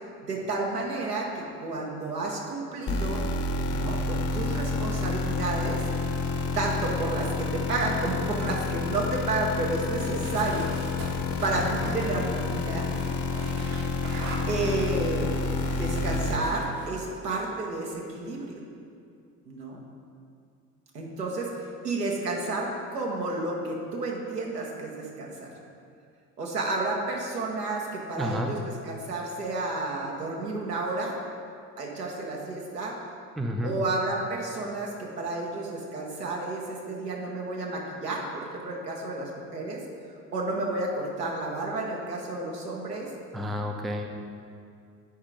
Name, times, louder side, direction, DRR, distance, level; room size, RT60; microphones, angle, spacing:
voice 1, 0.2-3.3 3.7-5.8 6.5-10.7 11.4-12.9 14.5-15.3 15.7-18.6 19.5-19.8 20.9-21.5 21.8-25.5 26.4-28.6 28.9-31.2 31.8-33.0 33.6-39.8 40.3-43.1, right 2 dB, 80° right, -2 dB, 1.3 m, -31 dB
sound 1, 2.9-16.4, left 4 dB, 30° left, 0.8 m, -29 dB
sound 2, 10.0-16.9, right 2 dB, 60° right, 1.4 m, -39 dB
voice 2, 28.2-28.5 33.4-33.8 43.3-44.1, equal, ahead, 3 dB, 0.4 m, -30 dB
8.4 x 5.0 x 5.1 m, 2.4 s
figure-of-eight pair, 60°, 47 cm